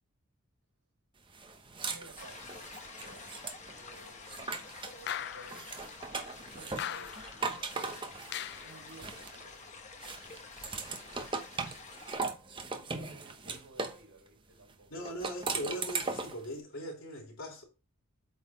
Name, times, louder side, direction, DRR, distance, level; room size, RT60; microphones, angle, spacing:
sound 1, 1.3-5.0 5.4-9.6 10.0-14.0 15.0-16.4, right 4 dB, 25° right, 0.9 m, -39 dB
voice 1, 1.9-3.3 3.7-4.6 5.0-5.7 6.5-8.2 8.6-9.6 12.7-15.0, right 2 dB, 70° right, 4.6 m, -56 dB
sound 2, 2.2-12.2, left 4 dB, 30° left, 1.1 m, -49 dB
sound 3, 5.1-5.7 6.8-7.4 8.3-8.8, left 10 dB, 50° left, 0.3 m, -39 dB
voice 2, 14.9-17.6, equal, 65° left, 3.1 m, -40 dB
8.4 x 4.0 x 4.2 m
head